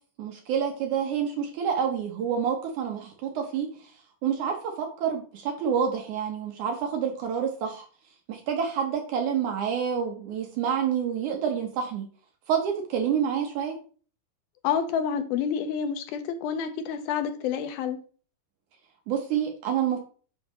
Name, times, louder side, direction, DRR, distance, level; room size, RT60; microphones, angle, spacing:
voice 1, 0.2-3.7 4.2-7.9 8.3-12.0 12.5-13.8 19.1-20.0, right 7 dB, 70° right, 2 dB, 2.0 m, -28 dB
voice 2, 14.6-18.0, left 7 dB, 85° left, 8 dB, 2.6 m, -28 dB
7.3 x 6.0 x 3.0 m, 0.40 s
omnidirectional pair, 4.3 m